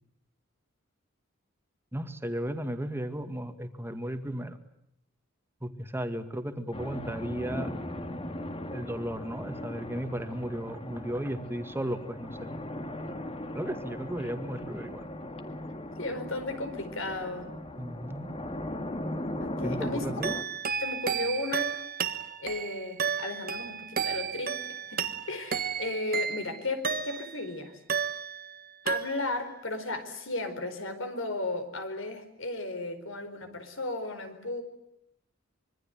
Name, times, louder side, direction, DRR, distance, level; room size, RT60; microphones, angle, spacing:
voice 1, 1.9-4.6 5.6-7.7 8.7-12.5 13.5-15.1 17.8-18.4 19.6-20.3, right 1 dB, 10° right, 8 dB, 2.0 m, -35 dB
sound 1, 6.7-20.4, left 1 dB, 30° left, 2.0 m, -38 dB
voice 2, 16.0-17.5 19.4-20.0 20.8-21.7 22.4-27.7 28.8-34.6, left 2 dB, 70° left, 8 dB, 4.5 m, -35 dB
sound 2, 20.2-27.5 27.9-28.6 28.9-29.5, right 7 dB, 45° right, 1.5 m, -33 dB
25.5 x 23.5 x 9.1 m, 0.77 s
head